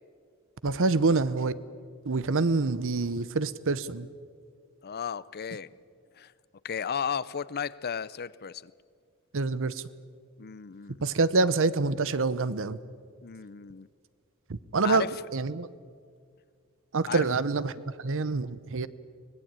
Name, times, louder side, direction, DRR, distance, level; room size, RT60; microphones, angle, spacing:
voice 1, 0.6-1.5 2.0-4.1 9.3-9.8 11.0-12.8 14.5-15.0 15.3-15.7 16.9-18.9, right 3 dB, 60° right, 17 dB, 0.8 m, -26 dB
voice 2, 4.8-5.7 6.1-6.3 6.6-8.7 10.4-11.0 13.2-13.9 14.8-15.1 17.1-17.3, left 7 dB, 45° left, 19 dB, 0.6 m, -34 dB
24.5 x 19.0 x 8.9 m, 2.1 s
head